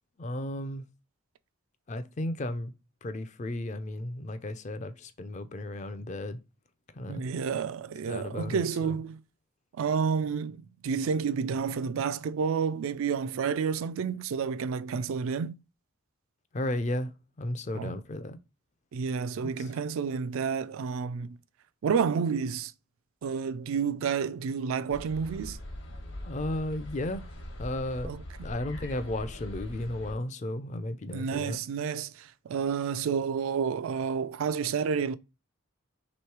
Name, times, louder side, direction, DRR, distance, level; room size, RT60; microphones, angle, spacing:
voice 1, 0.2-0.9 1.9-2.7 3.0-6.4 6.9-7.2 8.1-9.0 16.5-18.4 19.4-19.7 26.2-27.3 27.6-28.1 28.4-31.6, left 1 dB, 35° left, 0.4 m, -34 dB
voice 2, 7.1-9.2 9.8-15.5 17.7-17.9 18.9-21.4 21.8-22.7 23.2-25.6 28.0-28.2 31.1-35.2, right 6 dB, 75° right, 0.3 m, -30 dB
sound 1, 24.9-30.1, left 1 dB, 60° left, 1.0 m, -42 dB
3.1 x 3.1 x 4.5 m
head